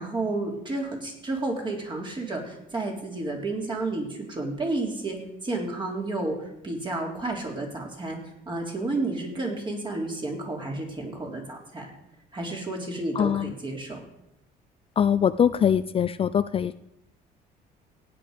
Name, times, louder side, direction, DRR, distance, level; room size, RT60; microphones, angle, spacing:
voice 1, 0.0-5.2 5.4-8.2 8.5-11.9 12.3-14.0, right 2 dB, 30° right, 0 dB, 3.7 m, -31 dB
voice 2, 13.1-13.5 15.0-16.7, left 8 dB, 35° left, 13 dB, 0.4 m, -22 dB
16.0 x 9.5 x 5.2 m, 0.84 s
cardioid pair, 110°, 17 cm